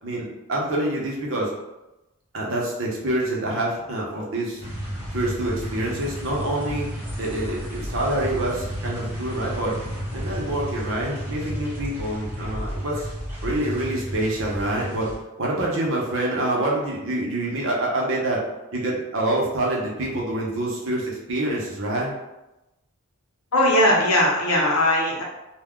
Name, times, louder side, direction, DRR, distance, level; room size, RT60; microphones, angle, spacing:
voice 1, 0.0-1.5 2.3-4.6 5.1-6.9 7.2-9.8 10.1-13.1 13.4-15.1 15.4-18.4 18.7-22.1, right 1 dB, 60° right, -3 dB, 0.8 m, -26 dB
sound 1, 4.6-15.2, equal, 10° right, 0.8 m, -32 dB
voice 2, 23.5-25.2, left 1 dB, 85° left, -2 dB, 0.8 m, -19 dB
2.2 x 2.2 x 3.6 m, 0.98 s
head